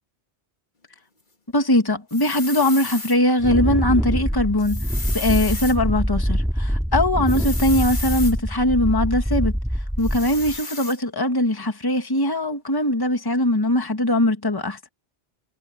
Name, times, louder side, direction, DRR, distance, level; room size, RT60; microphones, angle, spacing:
voice 1, 1.5-4.8 5.1-9.5 10.0-14.8, left 1 dB, 20° left, 1.8 m, -21 dB
sound 1, 2.1-3.2 4.6-5.8 7.3-8.3 10.0-11.0, left 3 dB, 45° left, 2.4 m, -33 dB
Wind, 3.4-10.6, equal, ahead, 3.0 m, -24 dB
omnidirectional pair, 1.1 m